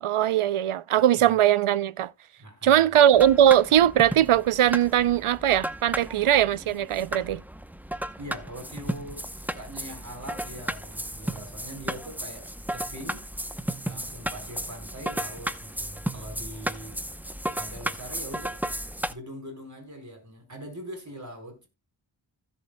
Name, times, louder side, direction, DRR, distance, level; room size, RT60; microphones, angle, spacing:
voice 1, 0.0-2.1 2.6-7.4, right 11 dB, 80° right, 0.6 m, -20 dB
voice 2, 2.4-2.8 8.2-13.3 13.8-17.0 17.6-18.6 19.1-21.7, right 1 dB, 35° right, 4.2 m, -42 dB
sound 1, 3.1-19.1, right 1 dB, 5° right, 0.7 m, -34 dB
16.0 x 7.3 x 2.2 m
cardioid pair, 50°, 49 cm